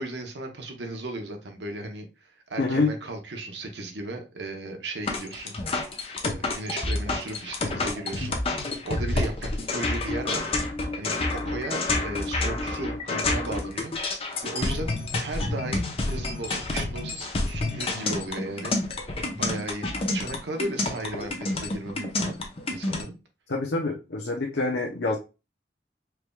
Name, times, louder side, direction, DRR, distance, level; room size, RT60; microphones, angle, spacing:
voice 1, 0.0-5.6 6.2-10.5 11.0-22.3 22.7-23.1, right 2 dB, 80° right, 4 dB, 0.9 m, -36 dB
voice 2, 2.6-2.9 23.5-25.2, left 3 dB, 80° left, -1 dB, 0.8 m, -26 dB
sound 1, 5.1-23.0, left 2 dB, 35° left, 0.7 m, -29 dB
4.7 x 3.3 x 2.3 m, 0.28 s
head